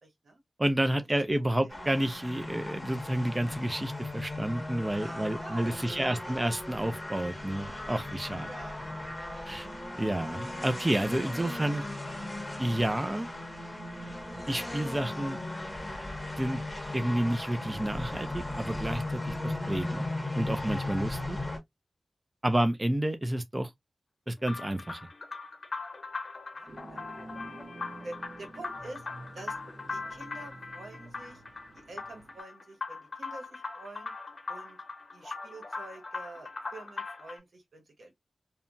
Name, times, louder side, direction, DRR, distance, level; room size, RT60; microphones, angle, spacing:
voice 1, 0.0-0.4 1.1-1.2 1.7-1.9 5.0-6.5 8.3-8.8 9.5-9.8 21.3-21.5 22.5-22.7 26.5-27.0 28.0-29.1 29.3-29.6 29.9-31.4 31.7-34.1 34.5-34.8 35.1-38.1, right 2 dB, 85° right, 1.0 m, -47 dB
voice 2, 0.6-8.5 9.5-9.7 10.0-11.8 12.6-13.3 14.5-15.4 16.4-16.6 16.9-20.1 20.3-21.4 22.4-23.7 24.3-25.0, right 1 dB, 20° right, 0.4 m, -30 dB
sound 1, 1.7-21.6, left 2 dB, 15° left, 0.8 m, -37 dB
sound 2, 24.4-37.4, left 3 dB, 55° left, 0.8 m, -40 dB
sound 3, 26.7-32.4, right 1 dB, 60° right, 0.7 m, -49 dB
2.8 x 2.1 x 2.5 m
wide cardioid pair, 85°, 0 cm